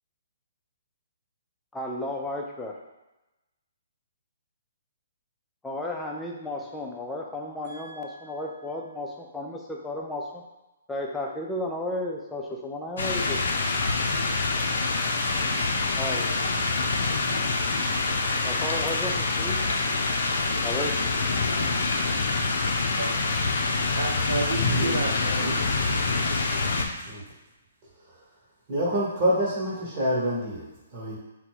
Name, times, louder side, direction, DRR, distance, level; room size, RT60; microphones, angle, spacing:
voice 1, 1.7-2.7 5.6-10.4 10.9-13.4 16.0-16.6 18.4-19.6 20.6-21.0, left 1 dB, 5° left, -1 dB, 0.6 m, -33 dB
voice 2, 7.6-8.2 22.9-23.4 23.9-25.4, right 3 dB, 75° right, -5 dB, 0.7 m, -32 dB
sound 1, 13.0-26.9, left 3 dB, 65° left, 0.6 m, -26 dB
voice 3, 24.6-25.0 25.4-25.6 27.1-27.2 28.7-31.2, equal, 40° right, -5 dB, 1.1 m, -27 dB
3.8 x 2.3 x 4.5 m, 1.0 s
hypercardioid pair, 135°, 0 cm